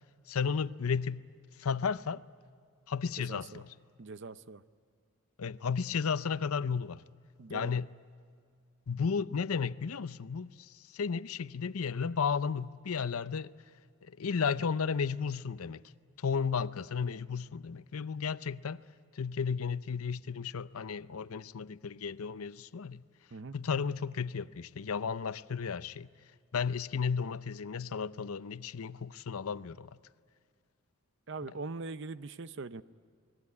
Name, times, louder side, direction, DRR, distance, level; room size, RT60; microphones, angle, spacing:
voice 1, 0.3-1.3 1.6-2.2 2.9-3.7 5.4-7.0 7.5-7.9 8.9-13.5 14.2-15.8 16.2-18.8 19.1-23.0 23.5-26.1 26.5-30.0 31.4-31.5, left 6 dB, 80° left, 0.6 m, -33 dB
voice 2, 3.3-3.6 4.0-4.6 7.4-7.8 23.3-23.6 31.3-32.8, right 3 dB, 55° right, 0.6 m, -42 dB
28.5 x 20.5 x 9.6 m
head